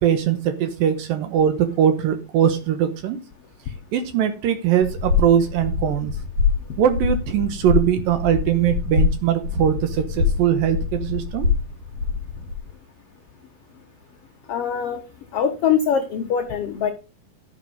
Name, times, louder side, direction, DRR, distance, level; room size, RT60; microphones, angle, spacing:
voice 1, 0.0-3.2 3.9-6.2 6.8-11.5, right 9 dB, 80° right, 9 dB, 2.6 m, -21 dB
sound 1, 4.8-12.6, left 5 dB, 45° right, 3.1 m, -24 dB
voice 2, 14.5-15.0 15.3-16.9, left 7 dB, 70° left, 5 dB, 1.4 m, -22 dB
12.0 x 6.6 x 5.1 m, 0.31 s
omnidirectional pair, 4.2 m